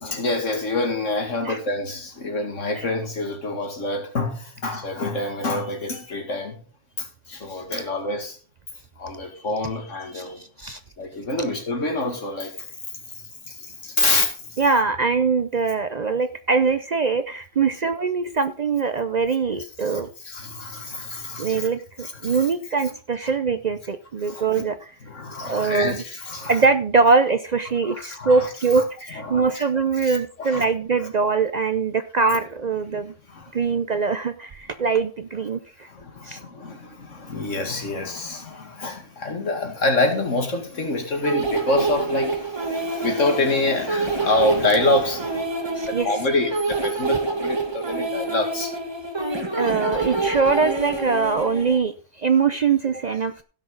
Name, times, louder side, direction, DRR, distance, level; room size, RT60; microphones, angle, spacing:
voice 1, 0.0-6.6 7.0-8.4 9.0-10.4 11.0-12.7 13.1-14.6 19.8-21.7 22.0-22.5 23.2-23.3 24.2-24.7 25.0-26.6 27.9-28.5 29.1-29.6 30.0-30.7 33.3-33.6 35.8-48.7, left 2 dB, 80° left, 2.5 m, -27 dB
voice 2, 14.6-20.1 21.4-24.9 25.4-26.0 26.5-33.1 33.5-35.6 36.2-36.4 45.8-46.1 49.6-53.4, right 4 dB, 50° right, 0.6 m, -22 dB
sound 1, 41.2-51.8, right 3 dB, 20° right, 1.2 m, -27 dB
16.0 x 6.3 x 3.9 m
omnidirectional pair, 1.3 m